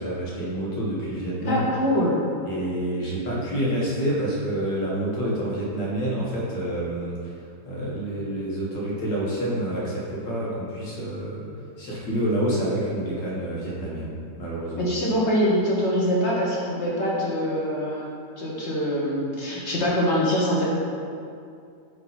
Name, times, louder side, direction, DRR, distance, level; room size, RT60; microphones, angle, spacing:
voice 1, 0.0-1.6 2.4-7.3 7.7-11.5 11.8-14.1 14.4-14.9, right 1 dB, 85° left, -6 dB, 2.1 m, -28 dB
voice 2, 1.5-2.2 14.8-18.1 18.4-20.6, equal, 45° left, -6 dB, 1.2 m, -24 dB
8.0 x 3.0 x 4.1 m, 2.5 s
omnidirectional pair, 1.9 m